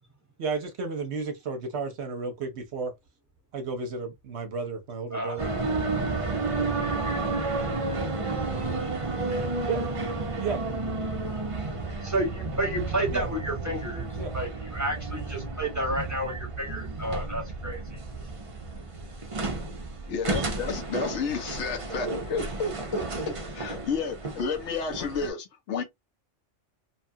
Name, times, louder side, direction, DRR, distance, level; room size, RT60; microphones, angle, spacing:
voice 1, 0.4-2.9 3.5-5.5 9.7-9.8 10.4-10.6 13.1-13.3 14.2-14.3, right 4 dB, 65° right, 0.9 m, -32 dB
sound 1, 5.4-25.3, right 3 dB, 40° right, 0.5 m, -32 dB
voice 2, 12.0-14.1 14.3-18.0, right 1 dB, 15° right, 1.1 m, -31 dB
voice 3, 20.1-25.8, left 5 dB, 70° left, 1.0 m, -31 dB
3.0 x 2.3 x 2.6 m
omnidirectional pair, 1.3 m